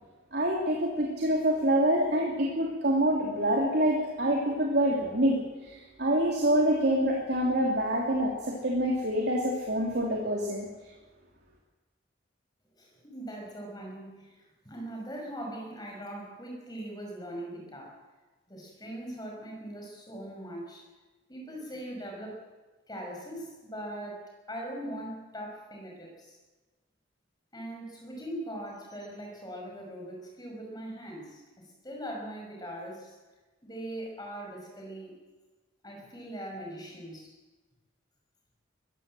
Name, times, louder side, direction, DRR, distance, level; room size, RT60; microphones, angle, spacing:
voice 1, 0.3-10.7, right 1 dB, 55° right, -2 dB, 3.1 m, -26 dB
voice 2, 12.8-18.0 18.5-20.8 21.3-22.4 22.9-26.4 27.5-33.2 33.6-35.1 35.8-37.3, right 1 dB, 20° left, 0 dB, 5.9 m, -41 dB
21.5 x 15.5 x 7.8 m, 1.2 s
head